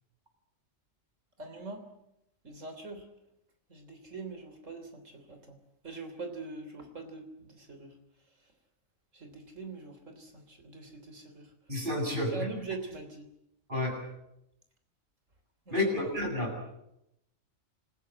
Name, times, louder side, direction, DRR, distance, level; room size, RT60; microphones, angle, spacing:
voice 1, 1.4-1.9 2.4-3.1 3.7-5.6 5.8-7.9 9.1-11.4 12.3-13.3 15.7-16.2, right 3 dB, 70° right, 6 dB, 3.7 m, -43 dB
voice 2, 11.7-12.5 13.7-14.0 15.7-16.8, left 1 dB, 40° right, 0 dB, 8.3 m, -30 dB
27.5 x 15.0 x 9.9 m, 0.83 s
omnidirectional pair, 1.3 m